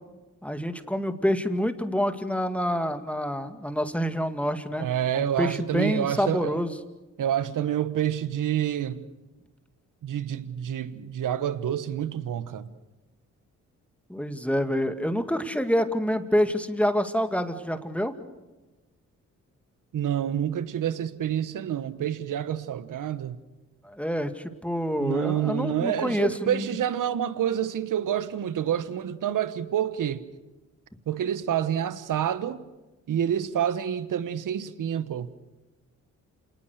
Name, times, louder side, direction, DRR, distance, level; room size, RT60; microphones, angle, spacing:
voice 1, 0.4-4.9 5.1-6.7 14.1-18.1 23.8-26.7, equal, 5° left, 2.2 m, -27 dB
voice 2, 4.8-6.6 7.2-9.1 10.0-12.7 19.9-23.4 25.0-30.3 31.1-32.6 33.1-35.3, right 10 dB, 70° right, 1.3 m, -28 dB
27.5 x 19.5 x 6.7 m
supercardioid pair, 50°, 33 cm